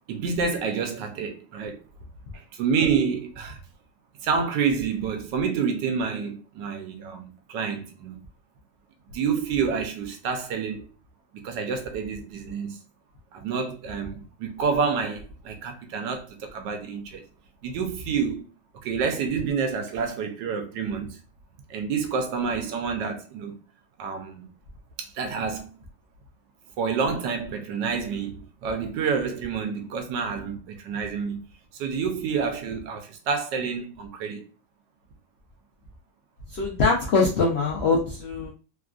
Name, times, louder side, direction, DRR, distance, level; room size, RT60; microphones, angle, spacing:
voice 1, 0.1-1.8 2.3-3.6 4.2-8.2 9.1-10.9 11.3-12.8 13.3-17.2 17.6-18.5 18.8-21.2 21.7-23.6 24.0-24.5 25.0-25.7 26.8-34.5, right 6 dB, 85° right, 1.2 m, -28 dB
voice 2, 36.5-38.5, left 4 dB, 90° left, 0.5 m, -23 dB
3.4 x 2.4 x 2.3 m
omnidirectional pair, 1.9 m